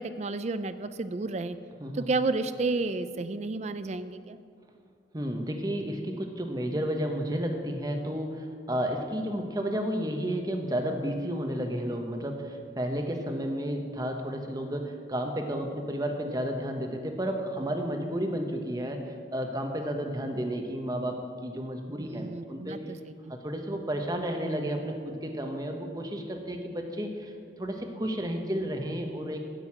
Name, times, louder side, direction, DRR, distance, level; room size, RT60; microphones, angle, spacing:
voice 1, 0.0-1.6 1.9-4.4 22.0-22.8 23.2-23.3, right 3 dB, 35° right, 12 dB, 0.4 m, -31 dB
voice 2, 1.8-2.1 5.1-19.0 19.3-22.9 23.3-27.3 27.6-29.4, equal, 20° right, 4 dB, 1.0 m, -32 dB
9.0 x 7.8 x 8.6 m, 2.2 s
head